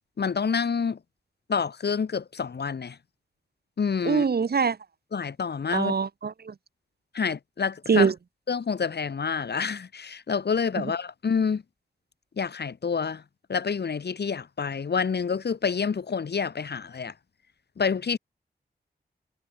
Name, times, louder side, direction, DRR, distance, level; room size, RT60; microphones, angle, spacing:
voice 1, 0.2-1.0 1.5-3.0 3.8-4.3 5.1-5.9 7.1-8.1 8.5-11.6 12.4-13.2 13.5-17.1 17.8-18.2, left 6 dB, 75° left, 3.0 m, -28 dB
voice 2, 4.0-4.8 5.7-6.5 7.9-8.1, right 5 dB, 65° right, 2.2 m, -23 dB
wide cardioid pair, 90°, 17 cm